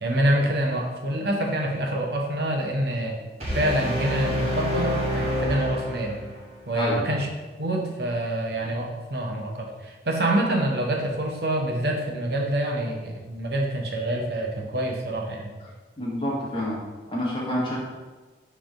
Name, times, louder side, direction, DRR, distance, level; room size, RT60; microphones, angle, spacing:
voice 1, 0.0-3.2 3.5-6.2 6.7-7.3 7.6-15.5, right 1 dB, 65° right, 0 dB, 1.0 m, -26 dB
sound 1, 3.4-6.4, equal, 35° right, 1.2 m, -27 dB
voice 2, 16.0-16.8 17.1-17.8, equal, 30° left, -5 dB, 1.5 m, -27 dB
7.3 x 3.5 x 3.8 m, 1.3 s
head